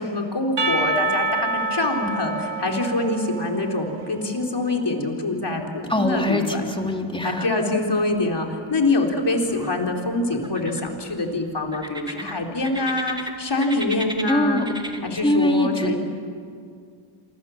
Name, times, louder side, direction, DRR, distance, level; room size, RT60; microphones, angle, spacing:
voice 1, 0.0-6.6 7.2-14.7 15.0-16.0, left 2 dB, 55° left, 2 dB, 4.2 m, -25 dB
Percussion / Church bell, 0.6-4.5, right 2 dB, 55° right, 2.3 m, -27 dB
voice 2, 5.9-7.5 14.3-14.7 15.2-16.0, left 1 dB, 10° left, 2 dB, 3.7 m, -23 dB
sound 1, 7.9-8.5 8.8-9.7 10.3-11.2 11.7-13.3 13.6-15.3, right 1 dB, 10° right, 2.3 m, -35 dB
29.0 x 24.0 x 7.4 m, 2.3 s
cardioid pair, 60°, 50 cm